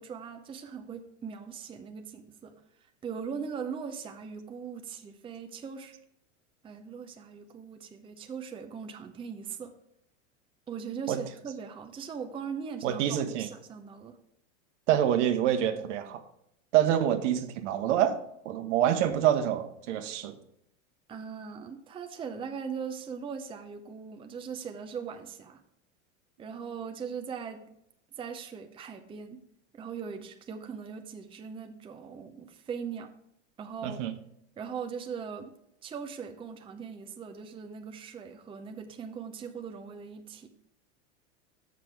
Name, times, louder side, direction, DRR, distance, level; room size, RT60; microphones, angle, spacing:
voice 1, 0.0-2.5 3.0-6.0 6.6-9.8 10.7-14.2 21.1-25.6 26.4-27.6 28.2-29.4 29.7-33.1 33.6-34.0 34.6-35.5 35.8-40.5, right 6 dB, 15° right, 6 dB, 0.6 m, -40 dB
voice 2, 12.8-13.5 14.9-16.2 16.7-18.2 18.4-20.4 33.8-34.1, right 10 dB, 70° right, 9 dB, 1.0 m, -26 dB
7.2 x 5.9 x 4.6 m, 0.75 s
hypercardioid pair, 115°, 38 cm